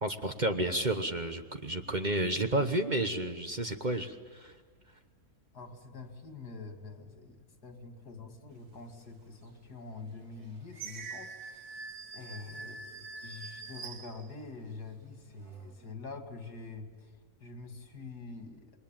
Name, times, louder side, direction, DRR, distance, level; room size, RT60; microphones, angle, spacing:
voice 1, 0.0-4.5, right 1 dB, 35° right, 7 dB, 1.1 m, -31 dB
voice 2, 5.5-11.6 12.1-17.1 17.4-18.8, left 3 dB, 80° left, 6 dB, 2.8 m, -46 dB
sound 1, 9.4-9.5 10.1-14.8 15.3-15.9, right 4 dB, 70° right, 2.2 m, -45 dB
27.5 x 22.0 x 8.9 m, 1.5 s
omnidirectional pair, 1.7 m